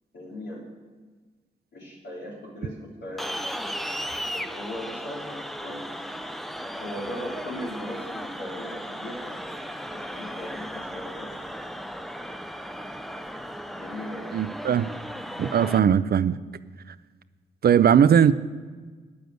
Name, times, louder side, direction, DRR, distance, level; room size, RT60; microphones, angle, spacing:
voice 1, 0.1-0.6 1.7-3.3 4.3-5.8 6.8-9.2 9.9-11.3 13.8-14.4, left 1 dB, 70° left, 3.4 m, -38 dB
sound 1, 3.2-15.8, equal, ahead, 0.7 m, -36 dB
voice 2, 14.3-14.9 15.4-16.4 17.6-18.3, right 8 dB, 55° right, 0.5 m, -19 dB
9.2 x 7.0 x 7.9 m
supercardioid pair, 45°, 19 cm